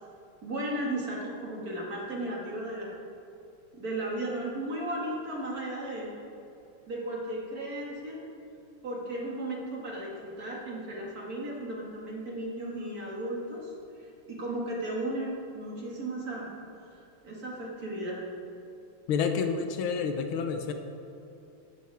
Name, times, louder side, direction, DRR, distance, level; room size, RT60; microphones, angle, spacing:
voice 1, 0.4-3.0 3.7-6.1 6.9-8.2 8.8-13.7 14.0-16.5 16.8-18.2, right 1 dB, 45° right, -3 dB, 2.4 m, -35 dB
voice 2, 19.1-20.7, left 6 dB, 75° left, 6 dB, 1.6 m, -29 dB
15.0 x 12.0 x 3.5 m, 2.8 s
omnidirectional pair, 2.4 m